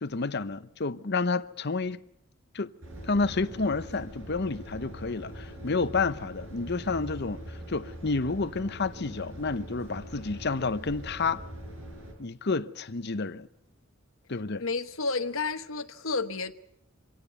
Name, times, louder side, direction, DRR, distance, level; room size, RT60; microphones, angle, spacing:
voice 1, 0.0-2.0 2.5-2.7 3.0-11.4 12.2-13.5 14.3-14.6, left 3 dB, 50° left, 0.8 m, -30 dB
sound 1, 2.8-12.1, equal, 65° right, 7.1 m, -43 dB
voice 2, 14.6-16.5, left 4 dB, 70° left, 1.2 m, -31 dB
25.0 x 17.0 x 8.1 m
head